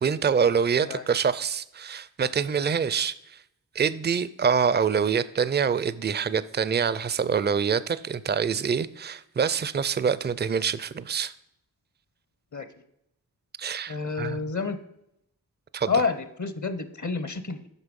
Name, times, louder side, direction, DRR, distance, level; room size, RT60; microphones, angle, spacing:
voice 1, 0.0-3.4 3.7-11.3 13.6-14.4 15.7-15.9, right 6 dB, 30° right, 16 dB, 0.4 m, -25 dB
voice 2, 13.9-14.8 15.9-17.7, left 4 dB, 50° left, 12 dB, 0.8 m, -29 dB
8.2 x 5.8 x 5.3 m, 0.79 s
wide cardioid pair, 55°, 37 cm